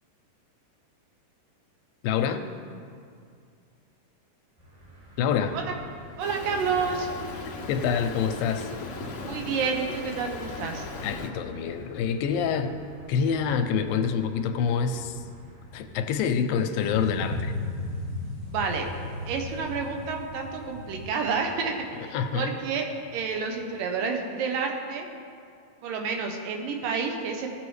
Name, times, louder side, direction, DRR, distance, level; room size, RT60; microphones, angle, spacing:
voice 1, 2.0-2.4 5.2-5.6 7.7-8.7 11.0-12.8 13.1-15.2 15.7-17.5 21.9-22.6, left 7 dB, 90° left, 7 dB, 2.4 m, -26 dB
sound 1, 4.6-21.8, right 1 dB, 55° right, 4.0 m, -47 dB
Stream, 6.2-11.3, left 4 dB, 70° left, 1.6 m, -38 dB
voice 2, 6.2-7.1 9.2-10.9 18.5-18.9 19.3-21.7 22.0-22.9 23.1-25.1 25.8-27.5, right 5 dB, 75° right, 3 dB, 2.5 m, -29 dB
sound 2, 16.9-22.5 23.0-23.1, left 1 dB, 40° right, 3.0 m, -35 dB
17.0 x 7.1 x 3.2 m, 2.3 s
omnidirectional pair, 4.0 m